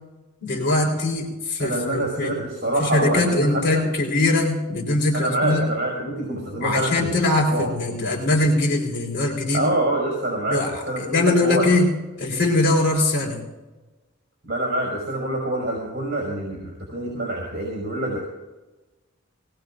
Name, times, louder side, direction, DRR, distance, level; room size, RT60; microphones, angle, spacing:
voice 1, 0.4-2.3 2.8-5.6 6.6-9.7 10.5-10.7 11.0-11.9 12.2-13.4, left 2 dB, 55° left, -1 dB, 4.1 m, -21 dB
voice 2, 1.6-3.9 5.1-7.1 7.5-7.7 9.5-11.7 14.5-18.2, right 1 dB, 50° right, -2 dB, 5.6 m, -26 dB
23.0 x 20.0 x 2.6 m, 1.1 s
head